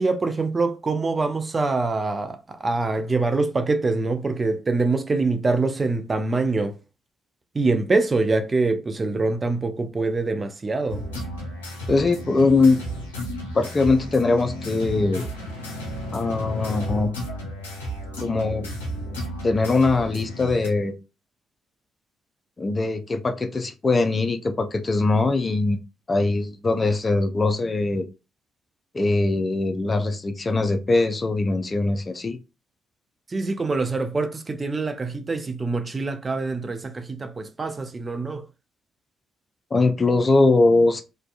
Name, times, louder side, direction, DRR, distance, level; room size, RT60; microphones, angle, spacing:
voice 1, 0.0-6.7 7.5-11.0 33.3-38.5, right 3 dB, 30° right, 0.5 m, -24 dB
sound 1, 10.9-20.7, equal, 85° left, 0.6 m, -33 dB
voice 2, 11.9-12.8 13.5-15.3 16.1-17.1 18.2-18.7 19.4-20.9 22.6-25.8 26.1-28.1 28.9-32.4 39.7-41.0, left 3 dB, 30° left, 0.4 m, -21 dB
2.5 x 2.2 x 2.4 m
figure-of-eight pair, 45°, 0 cm